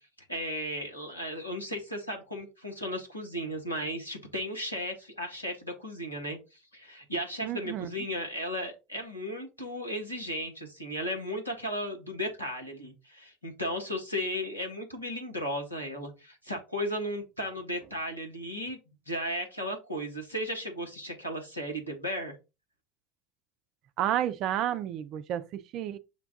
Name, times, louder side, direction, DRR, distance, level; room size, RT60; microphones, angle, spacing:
voice 1, 0.3-18.8 19.1-22.4, equal, 85° left, 1.2 m, -35 dB
voice 2, 7.4-7.9 24.0-26.0, right 11 dB, 45° right, 0.4 m, -31 dB
5.8 x 2.3 x 3.7 m
figure-of-eight pair, 70°, 0 cm